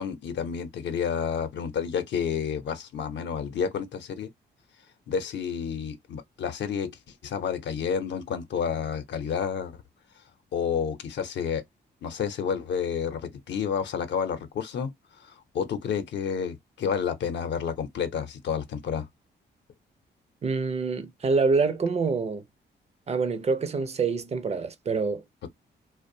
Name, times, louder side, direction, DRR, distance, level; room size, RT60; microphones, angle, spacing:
voice 1, 0.0-4.3 5.1-6.9 7.2-9.8 10.5-11.6 12.0-14.9 15.2-19.1, left 7 dB, 75° left, 0.6 m, -30 dB
voice 2, 20.4-22.4 23.1-25.2, right 4 dB, 35° right, 0.5 m, -26 dB
2.5 x 2.1 x 2.6 m
cardioid pair, 95°, 19 cm